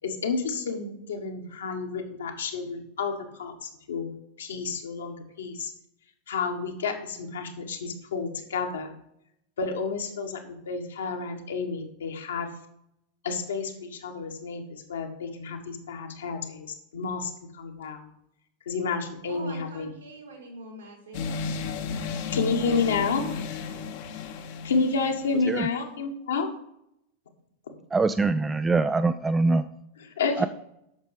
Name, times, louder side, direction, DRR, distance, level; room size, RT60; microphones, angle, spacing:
voice 1, 0.0-4.1 4.4-5.7 6.3-8.9 9.6-12.5 13.2-18.0 18.6-19.9 22.3-23.2 24.6-26.5 30.0-30.5, left 4 dB, 65° left, 3 dB, 1.4 m, -30 dB
voice 2, 19.3-21.4, right 2 dB, 75° right, 0 dB, 3.5 m, -43 dB
sound 1, 21.1-25.5, left 5 dB, 50° left, 0.9 m, -33 dB
voice 3, 27.9-29.7 30.4-30.5, right 3 dB, 15° right, 11 dB, 0.3 m, -23 dB
8.2 x 6.3 x 4.8 m, 0.79 s
figure-of-eight pair, 90°, 0 cm